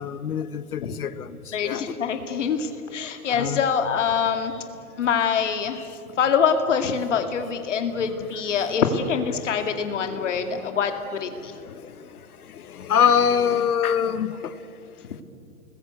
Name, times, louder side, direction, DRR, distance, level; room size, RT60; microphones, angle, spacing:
voice 1, 0.0-1.4 1.6-2.0 3.3-3.6 5.7-5.9 8.0-8.1 8.7-10.8 11.3-11.8 12.5-14.5, left 7 dB, 80° left, 1.5 m, -26 dB
voice 2, 1.5-4.5 5.0-5.8 6.2-11.5, left 6 dB, 55° left, 2.3 m, -24 dB
28.5 x 20.5 x 8.2 m
hypercardioid pair, 180°, 44 cm